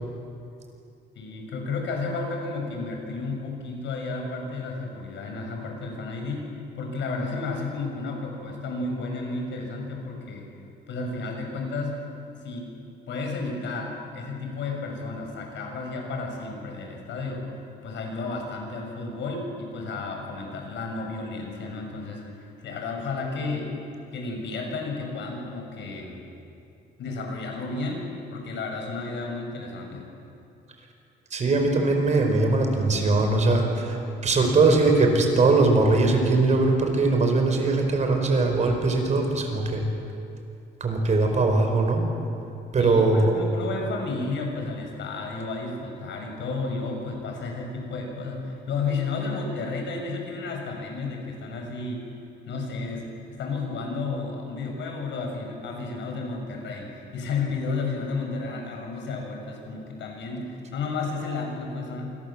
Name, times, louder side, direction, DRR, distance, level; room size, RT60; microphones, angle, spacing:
voice 1, 1.2-10.5 10.9-12.0 12.4-12.7 13.1-17.5 17.8-23.8 24.1-26.2 27.0-28.1 28.3-30.0 42.8-52.1 52.5-53.1 53.3-62.1, left 3 dB, 70° left, 2 dB, 6.9 m, -32 dB
voice 2, 31.3-39.8 40.8-42.0 42.7-43.3, right 3 dB, 35° right, 4 dB, 4.9 m, -21 dB
28.0 x 27.0 x 7.5 m, 2.7 s
cardioid pair, 145°, 20 cm